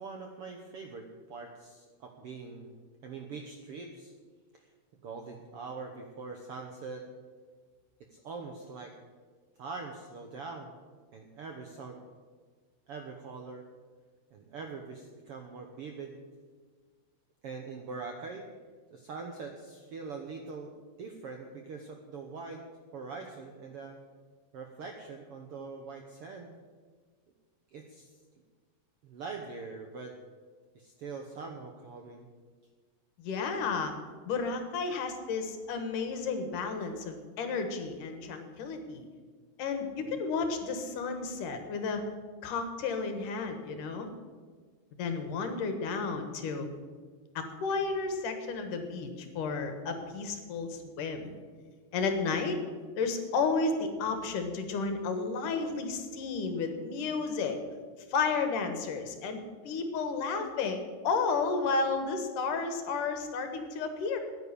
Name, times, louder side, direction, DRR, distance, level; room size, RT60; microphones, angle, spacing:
voice 1, 0.0-4.1 4.5-4.7 5.0-7.1 8.1-8.9 9.6-10.8 11.1-12.0 12.9-13.6 14.3-16.1 17.4-18.5 18.9-20.7 21.0-22.6 22.9-24.0 24.5-26.6 27.7-28.1 29.0-30.1 30.7-32.3 40.0-40.2, right 4 dB, 65° right, 3 dB, 1.4 m, -43 dB
voice 2, 33.2-33.9 34.2-39.0 39.6-42.1 42.4-44.1 45.0-46.7 47.4-51.3 51.9-52.6 53.0-57.6 58.1-64.2, left 4 dB, 70° left, 7 dB, 2.9 m, -32 dB
10.5 x 9.7 x 10.0 m, 1.5 s
omnidirectional pair, 4.0 m